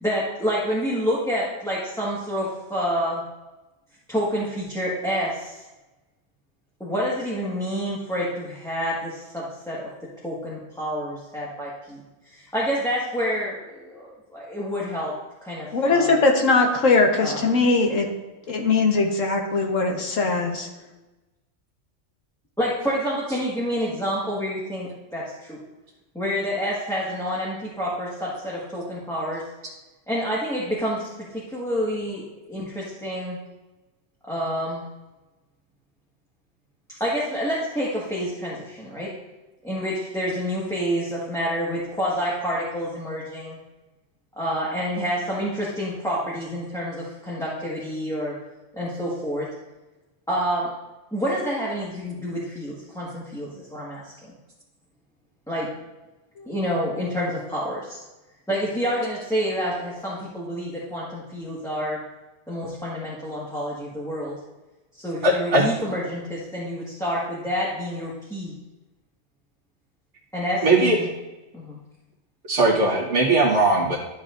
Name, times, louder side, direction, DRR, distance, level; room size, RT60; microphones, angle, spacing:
voice 1, 0.0-3.2 4.1-5.6 6.8-9.8 10.2-15.1 15.4-16.1 17.2-17.7 22.6-25.6 26.1-29.4 30.1-33.4 34.3-34.8 37.0-39.1 39.6-43.6 44.3-48.3 48.7-49.5 50.3-50.7 51.1-54.3 55.5-55.7 56.4-58.0 58.5-62.0 62.5-64.4 65.0-68.6 70.3-71.1 71.5-71.8, equal, 5° left, -8 dB, 1.6 m, -28 dB
voice 2, 15.7-18.1 18.5-20.7, left 3 dB, 90° left, 2 dB, 1.6 m, -20 dB
voice 3, 65.2-65.6 70.6-71.0 72.5-74.0, right 2 dB, 65° right, -9 dB, 1.8 m, -19 dB
12.0 x 7.2 x 2.6 m, 1.1 s
omnidirectional pair, 1.3 m